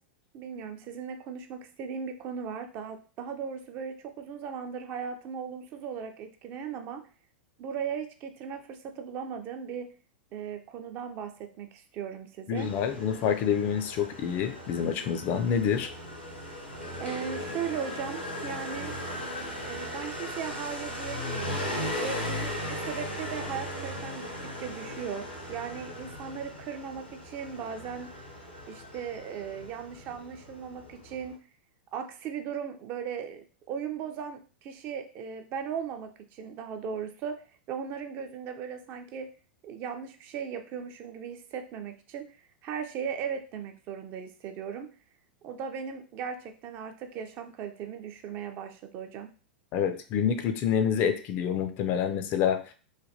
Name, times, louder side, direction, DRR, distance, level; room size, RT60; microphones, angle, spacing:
voice 1, 0.3-7.1 7.6-9.9 10.3-12.7 17.0-18.9 19.6-21.6 22.0-28.1 28.7-31.4 31.9-39.3 39.6-44.9 45.4-49.3, right 7 dB, 35° right, 6 dB, 0.4 m, -37 dB
voice 2, 12.5-15.9 49.7-52.7, left 8 dB, 35° left, 8 dB, 0.4 m, -27 dB
Motorcycle, 12.6-31.3, left 1 dB, 90° left, 0.7 m, -38 dB
3.2 x 2.2 x 2.6 m, 0.37 s
figure-of-eight pair, 90°, 6 cm